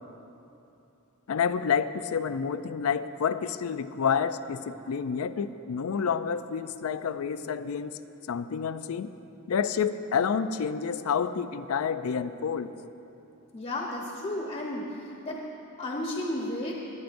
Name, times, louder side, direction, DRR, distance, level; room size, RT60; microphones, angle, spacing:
voice 1, 1.3-7.9 8.3-9.1 9.5-12.7, left 6 dB, 70° left, 12 dB, 0.4 m, -29 dB
voice 2, 13.5-15.4 15.8-16.7, left 1 dB, 35° left, -2 dB, 1.0 m, -33 dB
21.5 x 9.0 x 2.6 m, 2.9 s
head